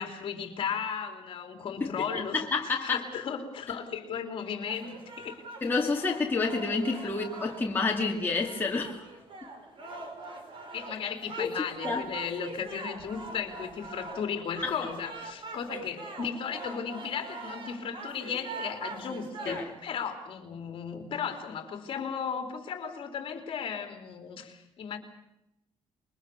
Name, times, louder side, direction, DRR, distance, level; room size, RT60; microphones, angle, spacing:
voice 1, 0.0-5.4 7.0-7.3 10.7-25.0, left 7 dB, 50° left, 5 dB, 3.5 m, -35 dB
voice 2, 2.3-3.0 5.6-9.1 9.4-9.5 11.4-11.6 11.8-12.0 14.6-14.7 19.5-19.7, left 4 dB, 20° left, -1 dB, 2.2 m, -29 dB
sound 1, 4.7-19.8, right 3 dB, 50° right, 5.1 m, -43 dB
27.0 x 22.5 x 7.1 m, 0.87 s
cardioid pair, 165°, 11 cm